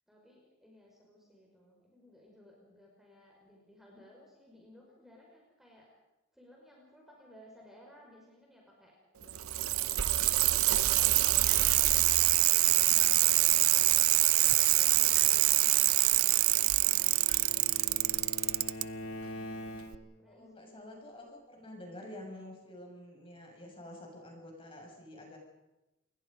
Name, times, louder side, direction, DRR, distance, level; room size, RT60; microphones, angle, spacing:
voice 1, 0.1-5.9 6.3-14.1 14.7-18.3 19.6-20.9, equal, ahead, -2 dB, 5.4 m, -59 dB
Bicycle, 9.2-18.8 19.9-20.0, right 17 dB, 75° right, 0.7 m, -25 dB
sound 1, 10.9-11.1 11.5-11.8 12.1-12.3 12.8-13.2 15.2-15.4 15.8-15.9 17.3-17.4, left 5 dB, 80° left, 5.4 m, -52 dB
Bowed string instrument, 16.3-20.3, equal, 60° left, 3.4 m, -44 dB
voice 2, 20.2-25.4, left 1 dB, 25° left, 1 dB, 7.0 m, -49 dB
28.0 x 22.5 x 5.4 m, 0.97 s
head